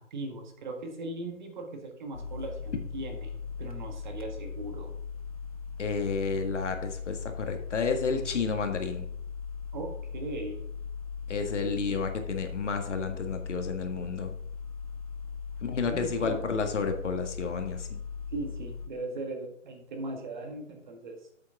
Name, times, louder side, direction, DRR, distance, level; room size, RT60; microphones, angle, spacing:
voice 1, 0.0-4.9 9.7-10.6 11.6-11.8 15.8-16.4 18.3-21.2, right 2 dB, 35° right, 4 dB, 1.6 m, -38 dB
sound 1, 2.1-18.9, left 5 dB, 30° left, 0.4 m, -39 dB
voice 2, 5.8-9.1 11.3-14.3 15.6-18.0, left 5 dB, 65° left, 5 dB, 1.8 m, -31 dB
8.2 x 8.0 x 3.7 m, 0.69 s
hypercardioid pair, 160°, 38 cm